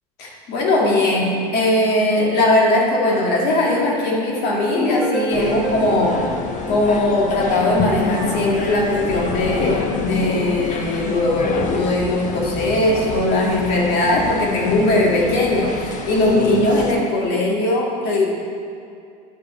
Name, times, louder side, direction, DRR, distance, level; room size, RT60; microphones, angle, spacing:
voice 1, 0.2-6.2 6.7-18.3, left 1 dB, 60° left, -2 dB, 2.1 m, -19 dB
sound 1, 4.8-7.7, right 1 dB, 5° right, 1.3 m, -29 dB
sound 2, 5.3-16.9, left 4 dB, 40° left, 0.9 m, -27 dB
11.5 x 5.0 x 4.2 m, 2.4 s
supercardioid pair, 95°, 19 cm